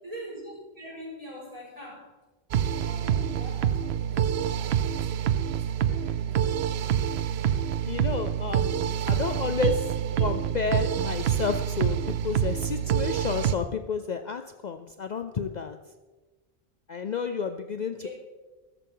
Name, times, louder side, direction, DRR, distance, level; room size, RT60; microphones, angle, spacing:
voice 1, 0.0-2.1 2.7-5.1 5.5-7.1 8.6-9.3 17.7-18.1, equal, 35° right, -5 dB, 5.9 m, -44 dB
sound 1, 2.5-13.5, right 9 dB, 80° right, 0.8 m, -26 dB
voice 2, 7.9-9.9 10.2-12.0 12.2-15.8 16.9-18.1, left 6 dB, 50° left, 8 dB, 0.7 m, -31 dB
16.0 x 13.5 x 3.9 m, 1.2 s
omnidirectional pair, 1.1 m